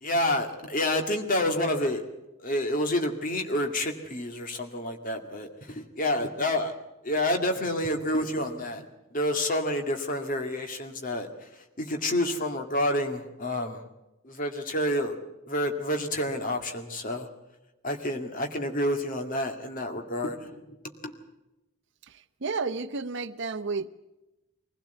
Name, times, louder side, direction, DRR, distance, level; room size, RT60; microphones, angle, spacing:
voice 1, 0.0-2.0 2.4-6.7 7.0-8.9 9.1-13.8 14.2-15.2 15.5-17.3 17.8-20.8 21.0-21.1, left 1 dB, 40° left, 4 dB, 2.1 m, -29 dB
voice 2, 22.4-23.9, right 4 dB, 55° right, 11 dB, 0.8 m, -31 dB
23.5 x 16.5 x 8.2 m, 0.99 s
head